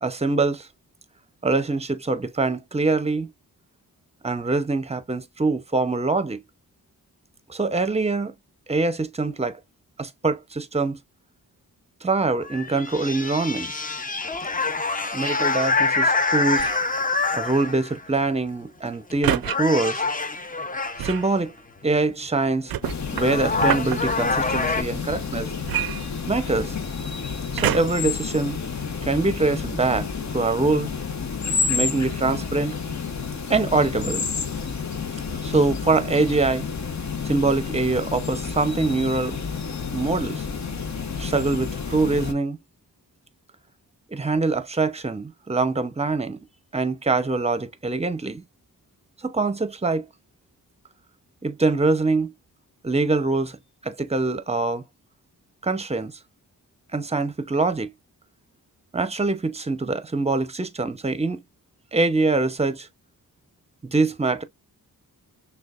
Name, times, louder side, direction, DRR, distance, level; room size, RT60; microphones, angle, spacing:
voice 1, 0.0-0.7 1.4-3.3 4.2-6.4 7.5-8.3 8.7-9.6 10.0-11.0 12.0-13.8 15.1-16.7 17.3-20.0 21.0-21.5 21.8-22.7 23.1-25.5 26.3-26.7 27.5-28.6 29.0-30.1 30.3-30.9 31.7-32.8 33.5-34.2 35.4-36.7 37.2-39.4 39.9-40.5 41.2-42.6 44.1-46.4 46.7-48.4 49.2-50.0 51.4-52.3 52.8-53.6 53.8-54.8 55.6-56.1 56.9-57.9 58.9-61.4 61.9-62.9 63.8-64.4, right 3 dB, 15° right, 0.7 m, -24 dB
sound 1, 12.4-18.0 18.9-19.1 19.4-21.3 22.7-22.8 23.1-24.8, left 3 dB, 20° left, 0.6 m, -25 dB
sound 2, 16.5-16.9 19.2-19.6 21.0-21.3 22.7-24.0 25.6-26.6 27.6-28.1 28.8-28.9, right 12 dB, 70° right, 0.5 m, -27 dB
sound 3, 22.8-42.3, left 5 dB, 50° left, 1.0 m, -30 dB
6.2 x 2.3 x 2.4 m
wide cardioid pair, 90°, 37 cm